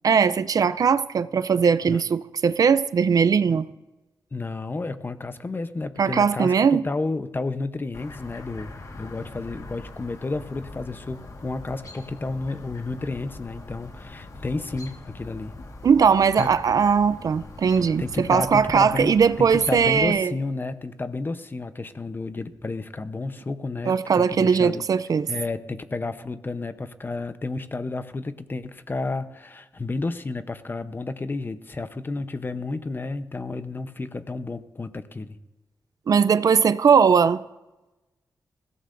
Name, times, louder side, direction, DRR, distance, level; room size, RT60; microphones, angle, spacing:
voice 1, 0.0-3.7 6.0-6.8 15.8-20.3 23.9-25.3 36.1-37.4, right 6 dB, 60° right, 0.5 m, -20 dB
voice 2, 4.3-15.5 16.4-16.5 18.0-24.8 25.3-35.4, left 3 dB, 30° left, 0.8 m, -31 dB
Chirp tweet, 7.9-20.1, left 2 dB, 55° left, 1.7 m, -42 dB
20.5 x 16.5 x 2.6 m
cardioid pair, 80°, 7 cm